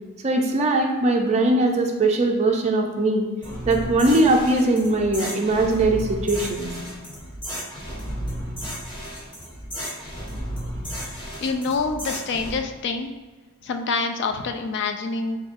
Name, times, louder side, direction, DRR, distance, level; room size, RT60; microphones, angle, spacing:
voice 1, 0.2-3.3 3.7-6.7, right 2 dB, 30° right, 1 dB, 0.4 m, -20 dB
sound 1, 3.4-12.6, equal, 20° left, 0.9 m, -33 dB
voice 2, 11.1-13.1 13.6-15.4, left 4 dB, 50° left, 6 dB, 0.3 m, -26 dB
3.9 x 3.6 x 2.5 m, 1.3 s
head